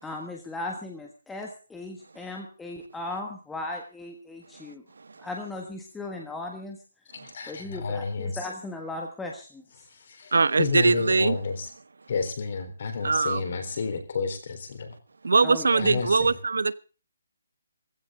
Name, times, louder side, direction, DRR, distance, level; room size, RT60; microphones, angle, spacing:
voice 1, 0.0-4.8 5.2-6.8 7.5-9.6 15.4-16.0, left 2 dB, 5° left, 1.4 m, -37 dB
voice 2, 4.5-5.3 7.1-7.3 10.3-11.4 13.0-13.4 15.2-16.8, right 4 dB, 90° right, 1.2 m, -23 dB
voice 3, 7.1-8.4 9.9-11.7 12.1-15.0 15.8-16.3, left 5 dB, 35° left, 4.0 m, -31 dB
17.5 x 16.0 x 3.8 m
hypercardioid pair, 180°, 0 cm